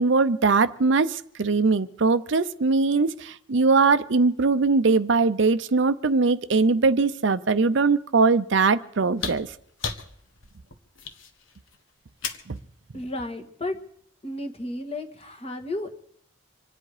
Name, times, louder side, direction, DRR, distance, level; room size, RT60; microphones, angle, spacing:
voice 1, 0.0-9.5 12.5-12.6, right 4 dB, 60° right, 13 dB, 0.6 m, -21 dB
sound 1, 9.2-12.6 14.0-14.1, left 5 dB, 70° left, 1.5 m, -35 dB
voice 2, 12.9-13.8 14.2-15.9, left 1 dB, 30° left, 4 dB, 1.7 m, -33 dB
26.5 x 10.5 x 4.9 m, 0.68 s
head